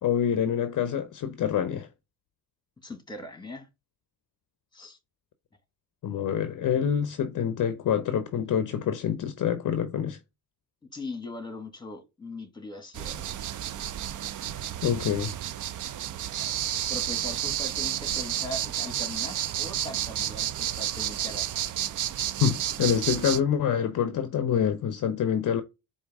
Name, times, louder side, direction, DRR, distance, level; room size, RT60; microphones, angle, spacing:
voice 1, 0.0-1.9 6.0-10.2 14.8-15.3 22.4-25.6, left 8 dB, 45° left, 0.6 m, -26 dB
voice 2, 2.8-3.7 4.7-5.0 10.9-13.4 16.4-16.5 16.9-21.6, left 1 dB, 10° left, 1.6 m, -40 dB
sound 1, 12.9-23.4, right 11 dB, 45° right, 0.5 m, -31 dB
4.5 x 2.7 x 3.5 m
supercardioid pair, 55°, 45 cm